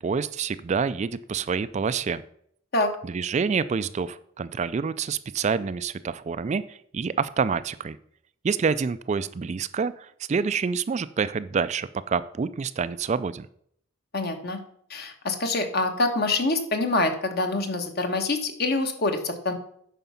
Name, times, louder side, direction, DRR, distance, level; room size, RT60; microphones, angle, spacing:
voice 1, 0.0-2.2 3.0-8.0 8.4-13.5, right 5 dB, 35° right, 14 dB, 0.3 m, -27 dB
voice 2, 14.1-14.6 14.9-19.5, left 2 dB, 50° left, 6 dB, 1.3 m, -25 dB
9.2 x 5.8 x 5.7 m, 0.66 s
head